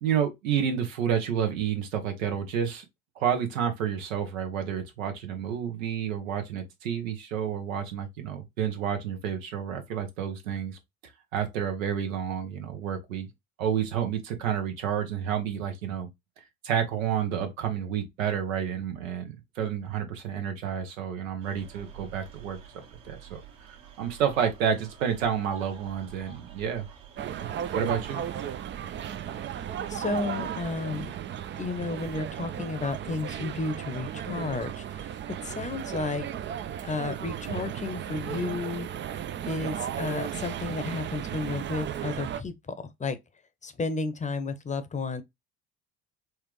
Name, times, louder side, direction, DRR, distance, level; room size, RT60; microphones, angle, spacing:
voice 1, 0.0-2.8 3.2-10.8 11.3-13.3 13.6-16.1 16.6-26.9 27.3-28.2, right 8 dB, 80° right, 1.0 m, -30 dB
sound 1, 21.4-31.2, right 8 dB, 60° right, 1.6 m, -48 dB
sound 2, 27.2-42.4, right 9 dB, 30° right, 0.4 m, -35 dB
voice 2, 29.9-31.1 31.6-36.2 36.8-38.9 39.5-42.5 43.0-43.2 43.6-45.2, left 3 dB, 20° left, 0.8 m, -32 dB
4.4 x 2.4 x 3.1 m
hypercardioid pair, 60°, 39 cm